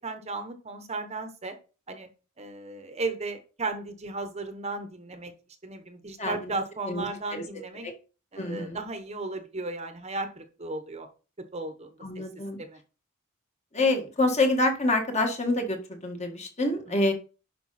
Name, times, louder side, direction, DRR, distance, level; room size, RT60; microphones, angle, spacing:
voice 1, 0.0-1.6 1.9-2.1 2.4-5.3 5.6-7.9 8.3-11.1 11.5-12.2 12.6-12.8 16.9-17.1, right 3 dB, 30° right, 7 dB, 1.0 m, -35 dB
voice 2, 8.4-8.8 12.0-12.6 13.7-17.1, left 2 dB, 30° left, 4 dB, 1.8 m, -26 dB
11.0 x 5.2 x 4.2 m, 0.35 s
head